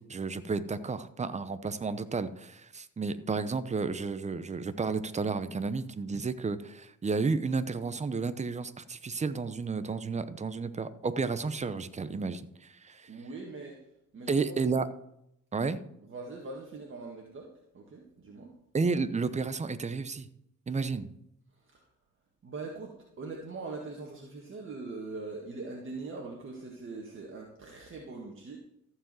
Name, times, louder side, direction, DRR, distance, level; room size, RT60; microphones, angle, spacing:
voice 1, 0.0-13.1 14.3-14.9 15.5-15.8 18.7-20.3 20.7-21.1, right 4 dB, 25° right, 13 dB, 0.8 m, -32 dB
voice 2, 13.1-13.9 14.1-14.6 16.0-18.5 21.6-21.8 22.4-28.6, right 3 dB, 40° right, 0 dB, 1.8 m, -42 dB
14.0 x 4.9 x 7.7 m, 0.78 s
cardioid pair, 90°, 30 cm